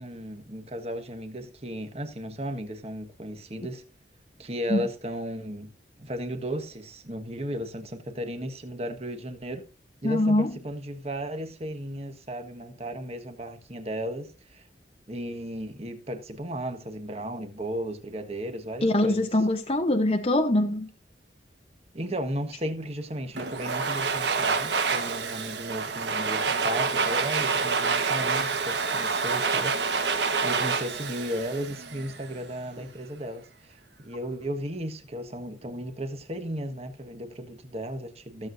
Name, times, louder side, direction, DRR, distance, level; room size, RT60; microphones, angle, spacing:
voice 1, 0.0-3.8 4.4-5.7 6.0-9.6 10.0-14.6 15.1-19.2 21.9-30.0 30.4-38.5, equal, 35° right, 1.4 m, -35 dB
voice 2, 10.0-10.6 18.8-20.9, left 1 dB, 35° left, 0.9 m, -23 dB
Domestic sounds home sounds, 23.4-32.3, right 4 dB, 80° right, 1.3 m, -27 dB
15.5 x 7.8 x 2.7 m
head